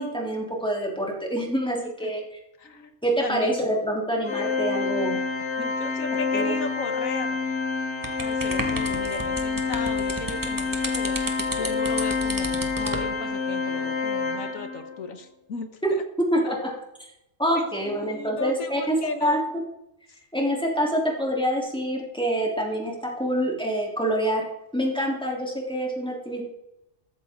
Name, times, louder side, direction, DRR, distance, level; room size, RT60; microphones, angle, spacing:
voice 1, 0.0-2.2 3.0-5.2 6.3-6.5 15.8-16.0 16.3-16.7 17.4-18.9 19.2-19.4 20.3-24.5 24.7-26.4, right 1 dB, 5° left, -1 dB, 3.3 m, -26 dB
voice 2, 1.8-2.1 2.6-2.9 3.2-3.7 5.6-7.4 8.2-15.8 16.4-16.5 17.5-19.5 20.1-20.2, left 4 dB, 85° left, 8 dB, 1.8 m, -36 dB
Organ, 4.3-15.0, left 4 dB, 55° left, 1.6 m, -27 dB
sound 1, 8.0-13.1, right 1 dB, 15° right, 1.7 m, -33 dB
14.5 x 13.5 x 3.8 m, 0.87 s
omnidirectional pair, 1.4 m